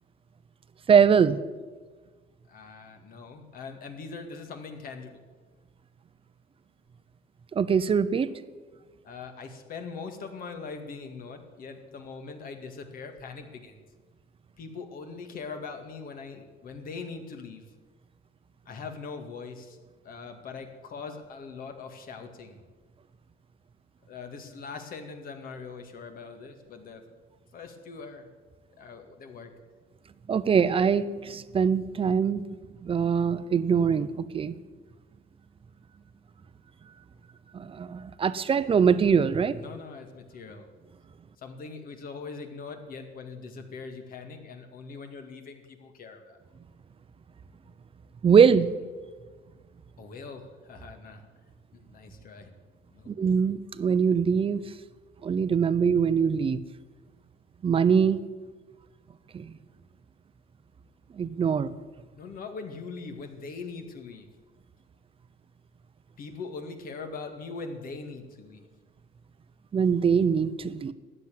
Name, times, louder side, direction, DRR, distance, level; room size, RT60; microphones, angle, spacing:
voice 1, 0.9-1.4 7.5-8.3 30.3-32.4 32.8-34.5 37.5-39.6 48.2-48.7 53.1-54.6 55.2-56.6 57.6-58.2 59.3-59.5 61.1-61.8 69.7-70.9, right 6 dB, 35° right, 13 dB, 0.8 m, -22 dB
voice 2, 2.5-5.2 9.0-13.8 14.6-17.6 18.7-19.8 20.0-22.6 24.1-27.0 27.5-28.3 28.8-29.5 39.6-40.7 41.4-46.4 50.0-51.3 51.7-52.5 52.9-53.1 62.2-64.3 66.2-68.7, left 4 dB, 60° left, 6 dB, 2.1 m, -41 dB
13.5 x 9.2 x 9.3 m, 1.4 s
cardioid pair, 110°, 17 cm